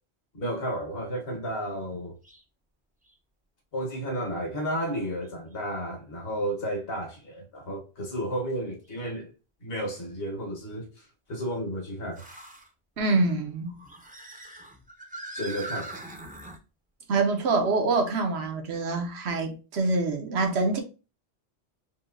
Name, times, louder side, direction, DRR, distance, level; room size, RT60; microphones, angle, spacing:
voice 1, 0.3-2.2 3.7-9.3 9.6-12.2 15.3-16.0, equal, 65° left, 1.5 m, -32 dB
sound 1, 2.2-2.4 3.1-3.2 5.2-5.3 8.8-8.9 12.1-12.7 13.6-16.6, right 2 dB, 10° right, 0.5 m, -41 dB
voice 2, 13.0-13.8 17.1-20.8, right 3 dB, 75° right, 1.1 m, -25 dB
5.3 x 2.8 x 2.6 m
omnidirectional pair, 1.1 m